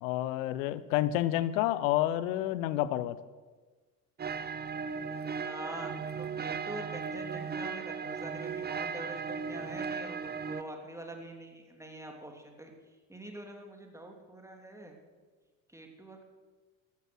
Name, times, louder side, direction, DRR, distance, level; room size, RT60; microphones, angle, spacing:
voice 1, 0.0-3.2, left 14 dB, 60° left, 16 dB, 0.9 m, -29 dB
sound 1, 4.2-10.6, right 6 dB, 20° right, 0.8 m, -37 dB
voice 2, 5.4-12.7 13.1-15.0 15.7-16.2, right 1 dB, 5° right, 2 dB, 3.0 m, -45 dB
14.5 x 12.0 x 6.5 m, 1.4 s
figure-of-eight pair, 55°, 45 cm